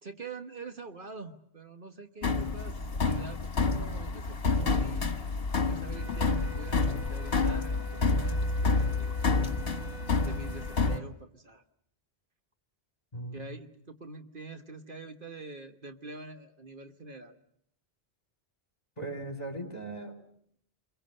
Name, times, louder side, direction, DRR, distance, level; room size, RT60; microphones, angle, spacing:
voice 1, 0.0-5.3 5.6-9.1 10.2-11.6 13.3-17.4, right 3 dB, 55° right, 7 dB, 1.5 m, -45 dB
sound 1, 2.2-11.0, left 3 dB, 65° left, 1.8 m, -29 dB
sound 2, 5.9-11.1, left 3 dB, 5° right, 3.7 m, -48 dB
voice 2, 13.1-13.6 19.0-20.4, right 2 dB, 40° left, 6 dB, 3.7 m, -39 dB
27.0 x 23.5 x 6.6 m, 0.68 s
omnidirectional pair, 1.1 m